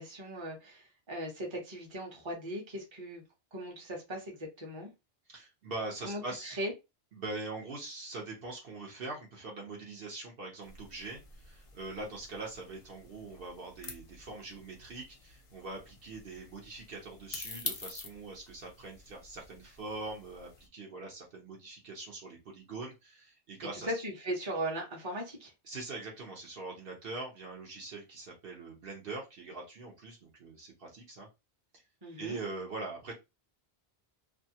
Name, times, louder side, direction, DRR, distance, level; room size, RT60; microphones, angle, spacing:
voice 1, 0.0-3.2 3.5-4.9 6.0-6.7 23.7-25.5 32.0-32.4, right 1 dB, 30° right, 0.8 m, -38 dB
voice 2, 5.3-6.5 7.1-23.9 25.6-31.3 32.2-33.1, right 3 dB, 60° right, 1.0 m, -43 dB
sound 1, 10.6-20.7, left 4 dB, 45° left, 0.5 m, -47 dB
2.6 x 2.3 x 2.7 m
omnidirectional pair, 1.1 m